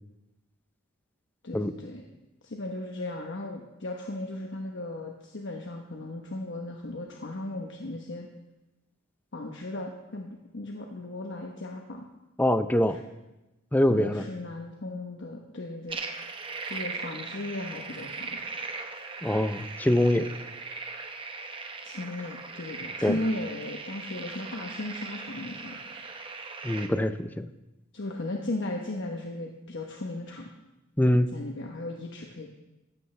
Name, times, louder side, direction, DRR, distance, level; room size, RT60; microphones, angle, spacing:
voice 1, 1.4-2.0 2.4-8.3 9.3-12.0 12.9-13.0 13.9-16.0 16.6-18.5 21.8-25.8 27.9-30.5 31.3-32.5, left 2 dB, 60° left, 1 dB, 1.1 m, -36 dB
voice 2, 12.4-13.0 13.7-14.3 19.2-20.3 23.0-23.2 26.6-27.5 31.0-31.3, left 1 dB, 10° left, 11 dB, 0.5 m, -24 dB
sound 1, 15.9-26.9, right 4 dB, 25° right, 1.0 m, -39 dB
15.0 x 12.5 x 3.3 m, 1.0 s
head